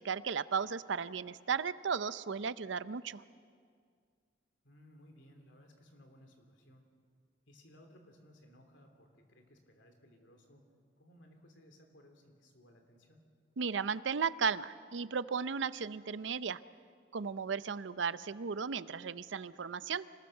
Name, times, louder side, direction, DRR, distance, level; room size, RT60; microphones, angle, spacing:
voice 1, 0.0-3.2 13.6-16.6 17.1-20.1, right 6 dB, 85° right, 15 dB, 0.6 m, -35 dB
voice 2, 4.6-6.9 7.5-10.6 11.0-13.3, equal, 90° left, 4 dB, 3.2 m, -60 dB
25.5 x 20.0 x 6.6 m, 2.1 s
head